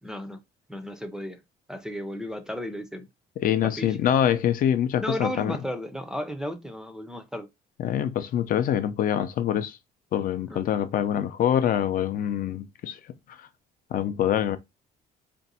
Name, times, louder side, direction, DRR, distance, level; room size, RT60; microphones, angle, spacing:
voice 1, 0.0-0.4 0.7-1.4 1.7-3.1 3.6-4.0 5.0-7.5 10.5-10.6, left 1 dB, 5° right, 0.5 m, -34 dB
voice 2, 3.4-5.5 7.8-9.8 10.1-13.0 13.4-13.5 13.9-14.6, left 10 dB, 55° left, 0.5 m, -25 dB
2.6 x 2.1 x 4.0 m
cardioid pair, 110°, 17 cm